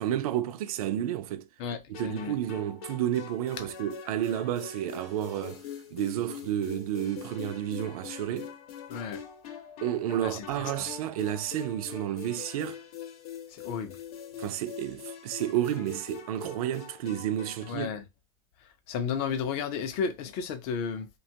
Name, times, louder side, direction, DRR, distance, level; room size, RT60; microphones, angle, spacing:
voice 1, 0.0-1.5 1.9-5.6 5.9-8.5 9.8-12.8 14.4-17.9, right 11 dB, 75° right, 0.4 m, -31 dB
voice 2, 1.6-2.3 8.9-9.2 10.2-10.4 13.5-14.0 17.7-18.0 18.9-21.1, left 6 dB, 30° left, 0.4 m, -33 dB
sound 1, 1.9-17.9, left 7 dB, 80° left, 0.8 m, -43 dB
2.8 x 2.2 x 2.7 m
supercardioid pair, 165°, 19 cm